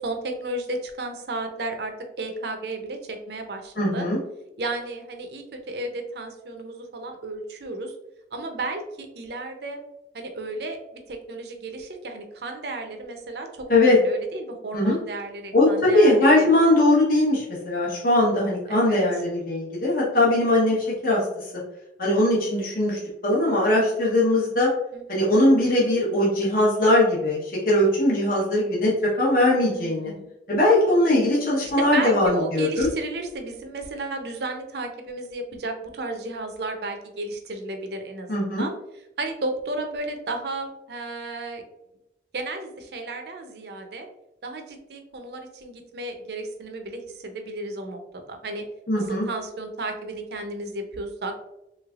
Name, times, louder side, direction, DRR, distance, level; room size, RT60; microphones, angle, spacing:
voice 1, 0.0-4.1 4.6-7.9 8.3-9.8 10.1-10.8 11.1-16.5 18.7-19.0 20.1-20.2 24.9-25.0 29.7-30.3 31.8-38.3 38.6-38.8 39.2-41.6 42.3-44.1 44.4-48.0 48.3-48.6 48.9-51.3, right 2 dB, 60° right, 5 dB, 0.5 m, -33 dB
voice 2, 3.8-4.2 13.7-14.0 14.7-15.0 15.5-21.2 22.0-24.7 25.1-28.9 29.2-30.1 30.5-32.9 38.3-38.7 48.9-49.3, left 1 dB, 50° left, -5 dB, 0.9 m, -20 dB
3.3 x 3.2 x 2.4 m, 0.87 s
head